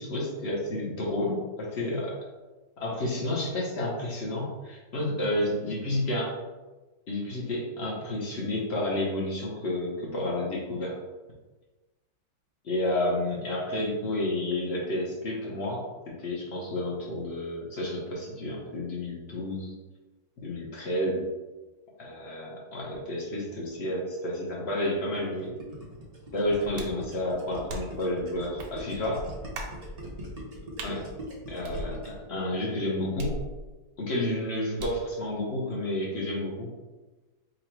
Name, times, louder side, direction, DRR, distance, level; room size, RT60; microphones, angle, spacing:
voice 1, 0.0-2.2 2.8-6.3 7.1-11.0 12.6-19.7 20.4-21.3 22.0-25.5 26.3-29.2 30.8-31.0 31.5-33.3 34.0-36.7, left 1 dB, 50° left, -3 dB, 0.8 m, -30 dB
Gurgling, 25.2-32.2, equal, 70° right, 0.3 m, -41 dB
sound 1, 26.8-27.0 27.7-28.1 28.6-28.7 29.5-29.8 30.8-31.0 31.6-32.3 33.2-33.9 34.8-35.1, right 1 dB, 90° right, 1.4 m, -38 dB
3.9 x 2.2 x 4.4 m, 1.2 s
omnidirectional pair, 2.0 m